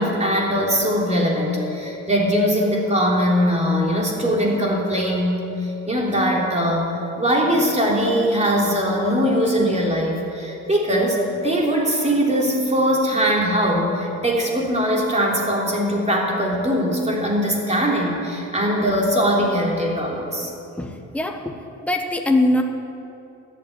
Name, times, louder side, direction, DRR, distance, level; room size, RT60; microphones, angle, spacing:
voice 1, 0.0-20.5, equal, 20° right, -2 dB, 3.5 m, -21 dB
voice 2, 20.8-21.6 21.8-22.6, left 1 dB, 5° left, 3 dB, 1.2 m, -21 dB
13.5 x 8.8 x 8.7 m, 2.7 s
cardioid pair, 90°, 30 cm